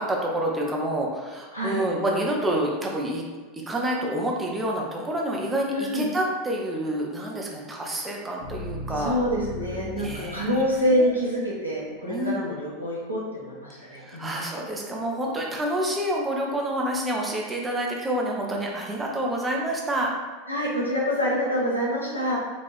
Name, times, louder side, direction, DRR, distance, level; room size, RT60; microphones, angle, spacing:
voice 1, 0.0-3.2 3.5-9.2 10.0-10.5 10.9-11.1 12.1-12.4 13.9-20.1, right 1 dB, 15° right, -1 dB, 0.8 m, -28 dB
voice 2, 5.7-6.1 9.0-14.3 20.5-22.3, equal, 90° left, -5 dB, 1.0 m, -26 dB
sound 1, 7.2-11.3, left 1 dB, 55° left, 0.9 m, -38 dB
4.4 x 2.8 x 3.3 m, 1.4 s
figure-of-eight pair, 85°, 0 cm